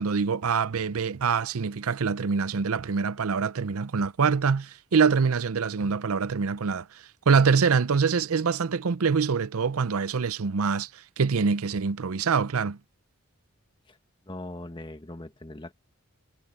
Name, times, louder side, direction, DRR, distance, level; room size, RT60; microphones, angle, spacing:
voice 1, 0.0-12.8, right 5 dB, 85° right, 0.6 m, -25 dB
voice 2, 14.3-15.7, left 1 dB, 20° left, 1.5 m, -40 dB
head